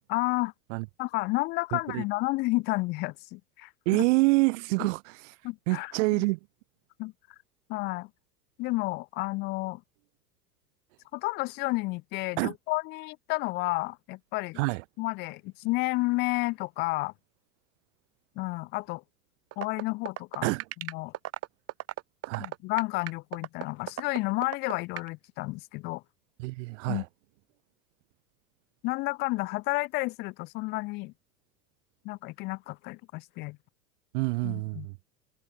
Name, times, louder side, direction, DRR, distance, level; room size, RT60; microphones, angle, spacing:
voice 1, 0.1-0.5 1.0-4.0 5.4-5.9 7.0-7.1 7.7-8.1 8.6-9.8 11.1-14.6 15.0-17.1 18.4-19.0 19.6-20.5 20.8-21.1 22.4-26.0 26.9-27.0 28.8-31.1 32.0-33.6 34.4-34.9, left 23 dB, 25° left, 0.3 m, -31 dB
voice 2, 1.7-2.0 3.9-5.3 5.7-6.4 12.4-12.5 14.6-14.8 20.4-20.6 22.3-22.5 26.4-27.1 34.1-34.9, right 26 dB, 50° right, 0.6 m, -27 dB
sound 1, 19.5-25.1, right 14 dB, 30° right, 1.1 m, -34 dB
hypercardioid pair, 90°, 48 cm